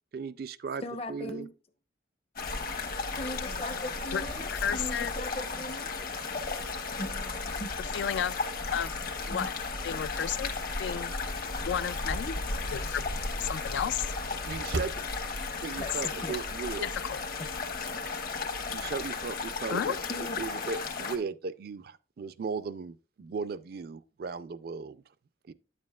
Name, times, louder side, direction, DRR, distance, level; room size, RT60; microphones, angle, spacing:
voice 1, 0.1-0.8 1.1-1.5 14.5-14.9 15.6-16.9 18.7-25.0 25.5-25.6, right 5 dB, 55° right, 0.4 m, -37 dB
voice 2, 0.8-1.5 3.2-5.9 7.0-7.7 9.3-9.5 15.8-16.4 17.4-17.5 20.1-20.4, left 1 dB, 30° left, 0.7 m, -39 dB
sound 1, 2.4-21.2, left 4 dB, 50° left, 1.1 m, -35 dB
sound 2, 4.2-5.5 6.0-6.1 7.6-8.1 8.6-11.3 11.7-11.8 12.2-12.3 12.6-12.7 12.9-16.7 17.0-17.2 17.5-18.1, right 2 dB, 80° right, 0.7 m, -44 dB
voice 3, 4.5-5.1 7.8-8.4 8.7-9.0 9.3-9.5 9.8-10.5 10.8-11.2 11.6-12.3 12.7-13.0 13.4-14.1 16.8-17.2 19.7-19.9, left 8 dB, 75° left, 0.3 m, -32 dB
9.3 x 7.5 x 2.3 m
head